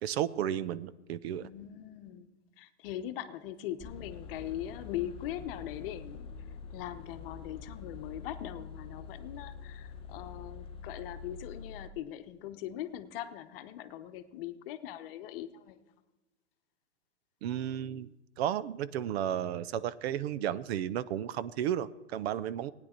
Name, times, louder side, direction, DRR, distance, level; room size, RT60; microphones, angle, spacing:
voice 1, 0.0-1.5 17.4-22.7, right 10 dB, 65° right, 17 dB, 0.6 m, -33 dB
voice 2, 1.4-2.3 2.6-6.3 6.7-15.8, left 12 dB, 55° left, 10 dB, 0.9 m, -41 dB
sound 1, 3.8-11.9, left 6 dB, 15° left, 0.4 m, -46 dB
16.0 x 9.7 x 4.4 m, 1.1 s
hypercardioid pair, 135°, 34 cm